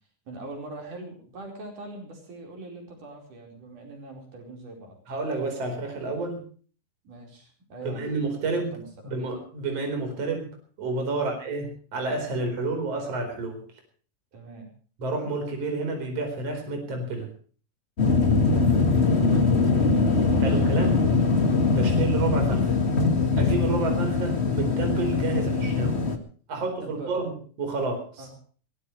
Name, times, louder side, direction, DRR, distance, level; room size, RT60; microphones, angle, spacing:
voice 1, 0.3-5.0 7.0-9.1 11.1-11.3 14.3-14.7 19.0-20.6 21.8-22.0 25.3-25.5 26.8-27.2 28.2-28.3, right 2 dB, 75° right, 2 dB, 6.2 m, -42 dB
voice 2, 5.1-6.4 7.8-8.7 9.0-10.5 10.8-13.6 15.0-17.3 20.4-21.0 21.7-22.8 23.4-26.0 26.5-28.3, right 3 dB, 50° right, 4 dB, 5.5 m, -30 dB
sound 1, 18.0-26.2, left 4 dB, 25° left, 1.7 m, -22 dB
22.5 x 18.0 x 3.3 m, 0.42 s
omnidirectional pair, 3.6 m